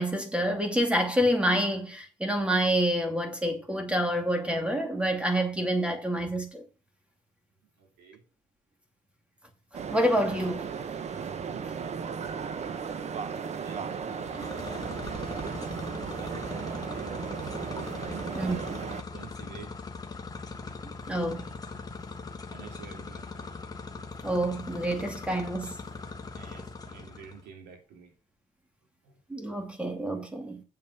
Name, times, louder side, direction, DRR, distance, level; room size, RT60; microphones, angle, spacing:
voice 1, 0.0-6.6 9.9-10.7 18.3-18.6 21.1-21.5 24.2-25.8 29.3-30.6, equal, 5° right, 2.5 m, -27 dB
voice 2, 7.8-8.2 11.4-11.7 13.5-15.5 16.2-17.6 18.1-18.7 19.1-19.8 22.5-23.6 26.3-28.1 29.0-29.2, right 6 dB, 90° right, 3.7 m, -49 dB
sound 1, 9.7-19.0, right 6 dB, 40° right, 1.2 m, -35 dB
sound 2, 14.0-27.4, left 4 dB, 20° left, 1.5 m, -41 dB
7.5 x 7.5 x 6.0 m
cardioid pair, 110°, 17 cm